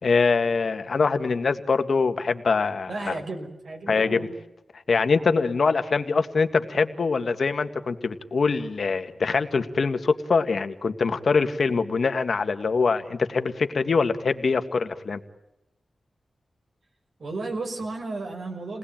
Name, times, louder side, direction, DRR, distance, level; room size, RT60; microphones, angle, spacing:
voice 1, 0.0-3.2 3.9-4.3 4.9-15.2, left 4 dB, 60° left, 8 dB, 1.8 m, -23 dB
voice 2, 2.9-4.3 17.2-18.8, right 3 dB, 65° right, 3 dB, 5.6 m, -33 dB
29.5 x 20.0 x 9.0 m, 0.87 s
wide cardioid pair, 120°, 0 cm